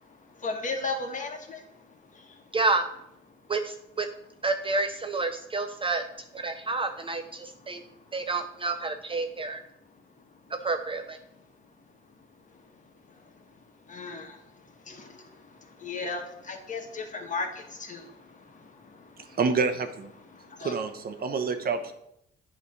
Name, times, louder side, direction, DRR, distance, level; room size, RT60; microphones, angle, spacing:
voice 1, 0.4-1.6 13.9-14.2 15.8-16.2 16.5-17.5 17.9-18.0 20.6-20.7, left 3 dB, 40° left, 4 dB, 1.5 m, -33 dB
voice 2, 2.5-2.8 3.5-4.1 4.4-6.0 6.3-7.8 8.1-9.6 10.6-11.2, right 3 dB, 25° right, 7 dB, 0.5 m, -29 dB
voice 3, 19.3-20.1 20.6-21.9, right 5 dB, 50° right, 7 dB, 0.8 m, -28 dB
8.3 x 3.3 x 6.3 m, 0.78 s
cardioid pair, 90°, 20 cm